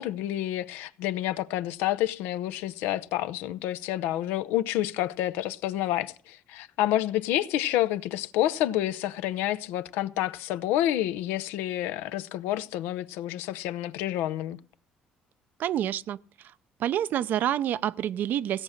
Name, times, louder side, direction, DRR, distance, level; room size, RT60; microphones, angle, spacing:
voice 1, 0.0-14.6, left 13 dB, 90° left, 0.6 m, -29 dB
voice 2, 15.6-16.2 16.8-18.6, right 11 dB, 70° right, 0.6 m, -27 dB
16.5 x 7.4 x 6.5 m
cardioid pair, 85°, 3 cm